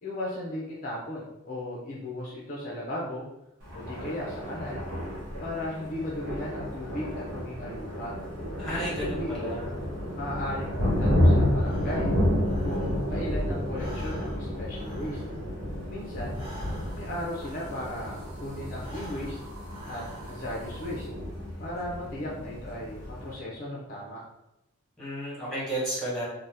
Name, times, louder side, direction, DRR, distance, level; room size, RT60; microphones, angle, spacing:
voice 1, 0.0-3.2 3.7-4.8 5.4-8.1 8.8-9.6 10.1-12.1 12.6-15.2 15.9-16.4 16.9-19.4 19.9-21.1 21.6-24.2, left 1 dB, 40° left, -5 dB, 0.4 m, -36 dB
Thunder, 3.6-23.3, left 1 dB, 85° right, 0.9 m, -30 dB
voice 2, 8.5-9.7 25.0-26.2, right 1 dB, 5° left, -8 dB, 1.2 m, -32 dB
Breathing, 11.6-13.3 13.6-18.2 18.7-20.6, equal, 25° right, 0.9 m, -47 dB
sound 1, 16.0-21.1, right 2 dB, 55° right, 1.2 m, -50 dB
2.7 x 2.1 x 3.3 m, 0.88 s
head